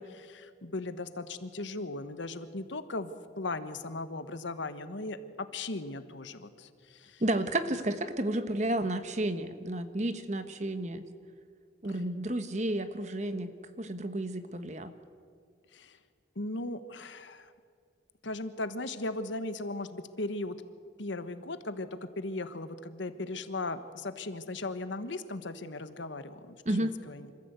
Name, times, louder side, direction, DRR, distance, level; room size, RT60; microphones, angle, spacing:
voice 1, 0.0-3.1 3.4-7.2 11.9-12.0 15.7-16.0 16.3-17.5 18.2-20.6 21.0-27.3, left 2 dB, 75° left, 11 dB, 1.2 m, -37 dB
voice 2, 7.2-11.1 11.8-13.5 13.8-14.9 26.6-26.9, right 1 dB, 35° right, 10 dB, 1.2 m, -31 dB
26.5 x 14.5 x 8.1 m, 2.2 s
head